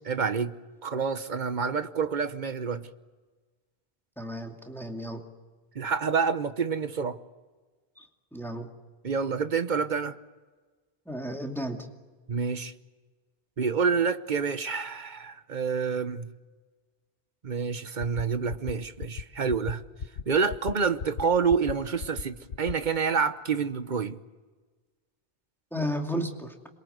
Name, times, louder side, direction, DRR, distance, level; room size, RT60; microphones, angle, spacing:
voice 1, 0.1-0.5 0.8-2.9 5.7-7.2 9.0-10.1 12.3-12.7 13.6-16.3 17.4-19.8 20.3-24.2, right 5 dB, 50° right, 1.1 m, -28 dB
voice 2, 4.2-5.2 8.0-8.1 8.3-8.7 11.1-11.8 25.7-26.5, equal, ahead, 2.4 m, -33 dB
sound 1, 18.0-18.2 18.5-18.7 19.0-19.2 19.5-19.7 20.0-20.2 20.5-20.7 21.0-21.2 21.5-21.7 22.0-22.2 22.5-22.7, left 6 dB, 85° left, 1.2 m, -34 dB
27.0 x 22.5 x 8.1 m
omnidirectional pair, 1.0 m